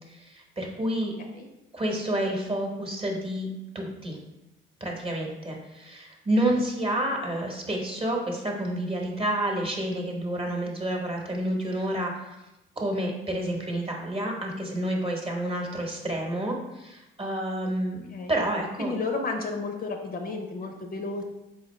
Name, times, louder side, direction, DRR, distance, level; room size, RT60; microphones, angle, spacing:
voice 1, 0.1-1.1 1.7-3.5 3.7-4.2 4.8-12.4 12.8-18.9, right 1 dB, 25° right, 0 dB, 1.0 m, -29 dB
voice 2, 18.8-21.3, left 3 dB, 50° left, 4 dB, 0.7 m, -32 dB
4.0 x 3.8 x 3.1 m, 0.95 s
cardioid pair, 90°, 20 cm